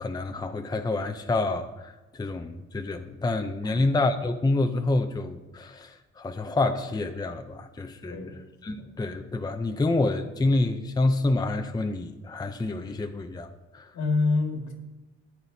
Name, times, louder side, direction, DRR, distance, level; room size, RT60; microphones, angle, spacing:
voice 1, 0.0-8.3 8.6-13.9, left 2 dB, 15° left, 5 dB, 0.6 m, -28 dB
voice 2, 8.0-8.9 13.9-14.7, left 3 dB, 70° left, 2 dB, 2.0 m, -28 dB
14.0 x 9.0 x 2.8 m, 1.0 s
cardioid pair, 90°, 30 cm